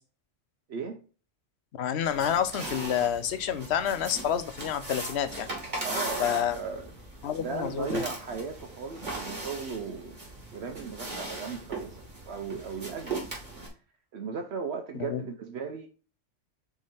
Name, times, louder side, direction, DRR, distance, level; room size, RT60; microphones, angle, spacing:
voice 1, 0.7-1.0 5.8-6.9 7.4-10.2 10.5-13.2 14.1-15.9, right 5 dB, 65° right, 0.9 m, -36 dB
voice 2, 1.8-5.5 6.2-6.6 7.2-8.0 14.9-15.2, left 9 dB, 65° left, 0.9 m, -29 dB
sound 1, 2.0-13.7, right 2 dB, 40° right, 2.2 m, -38 dB
6.3 x 3.8 x 4.2 m
omnidirectional pair, 1.2 m